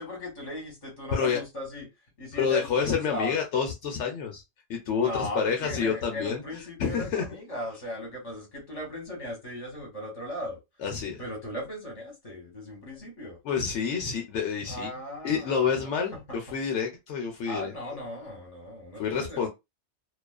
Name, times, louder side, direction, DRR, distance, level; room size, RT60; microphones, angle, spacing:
voice 1, 0.0-1.9 2.2-3.4 5.0-10.6 11.2-13.4 14.7-16.2 17.4-19.5, left 1 dB, 30° left, 1.1 m, -37 dB
voice 2, 2.3-4.4 4.7-7.2 10.8-11.2 13.4-14.9 15.2-17.7 19.0-19.5, left 6 dB, 75° left, 0.9 m, -28 dB
2.4 x 2.3 x 2.2 m
omnidirectional pair, 1.2 m